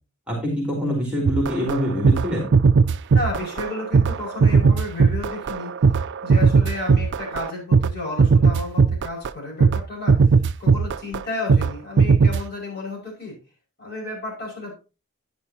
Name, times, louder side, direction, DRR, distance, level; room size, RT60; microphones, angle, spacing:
voice 1, 0.3-2.5, equal, 5° right, -1 dB, 3.2 m, -24 dB
sound 1, 1.3-7.9 8.2-9.3 9.6-9.8 10.1-11.2 11.5-11.7 12.0-12.4, right 5 dB, 55° right, 0.4 m, -17 dB
voice 2, 3.1-5.7 6.2-10.3 10.6-13.4 13.8-14.8, left 2 dB, 45° left, -2 dB, 5.7 m, -32 dB
11.0 x 9.9 x 2.9 m, 0.31 s
head